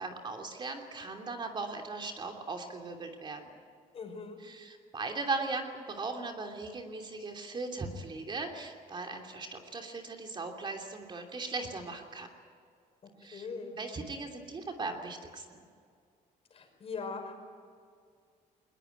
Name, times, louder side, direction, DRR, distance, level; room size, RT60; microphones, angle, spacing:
voice 1, 0.0-3.5 4.4-12.3 13.2-13.5 13.8-15.6, right 3 dB, 35° right, 3 dB, 2.9 m, -38 dB
voice 2, 3.9-4.4 13.3-13.8 16.5-17.3, left 4 dB, 45° left, 4 dB, 5.2 m, -40 dB
21.5 x 20.5 x 9.3 m, 2.2 s
cardioid pair, 115°, 14 cm